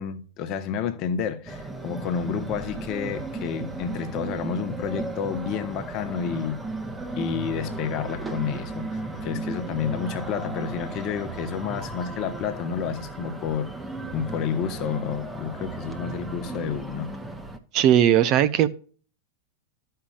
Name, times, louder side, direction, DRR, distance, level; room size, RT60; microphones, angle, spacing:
voice 1, 0.0-6.6 7.2-13.7 14.1-17.1, left 7 dB, 40° left, 1.0 m, -30 dB
sound 1, 1.5-17.6, right 2 dB, 10° right, 1.0 m, -35 dB
voice 2, 17.7-18.7, right 11 dB, 40° right, 0.6 m, -18 dB
14.0 x 5.6 x 2.4 m
figure-of-eight pair, 90°, 0 cm